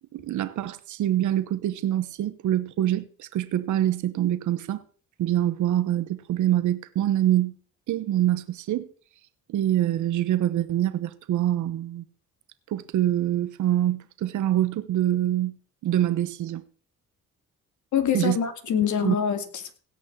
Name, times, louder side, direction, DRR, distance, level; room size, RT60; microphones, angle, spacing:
voice 1, 0.1-4.8 5.2-7.5 7.9-8.9 9.5-12.0 12.7-15.6 15.8-16.6 18.1-18.4 19.0-19.1, right 12 dB, 75° right, 1.1 m, -25 dB
voice 2, 17.9-19.7, left 8 dB, 70° left, 2.7 m, -25 dB
17.0 x 6.3 x 7.4 m
cardioid pair, 90°, 30 cm